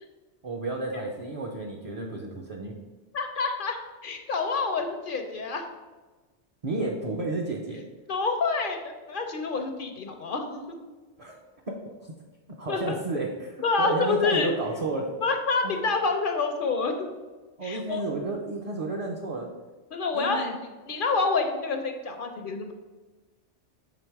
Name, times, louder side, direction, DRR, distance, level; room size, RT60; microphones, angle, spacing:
voice 1, 0.4-2.7 6.6-7.9 11.2-11.4 11.7-12.1 12.6-13.3 13.8-15.1 15.6-15.8 17.6-19.5 20.1-20.5, right 3 dB, 40° right, -1 dB, 0.6 m, -31 dB
voice 2, 3.1-3.8 4.0-5.6 8.1-10.8 12.7-12.9 13.6-14.5 15.2-17.1 17.6-18.0 19.9-20.5 20.9-22.7, left 4 dB, 55° left, 5 dB, 0.7 m, -27 dB
7.0 x 3.4 x 4.5 m, 1.2 s
omnidirectional pair, 1.2 m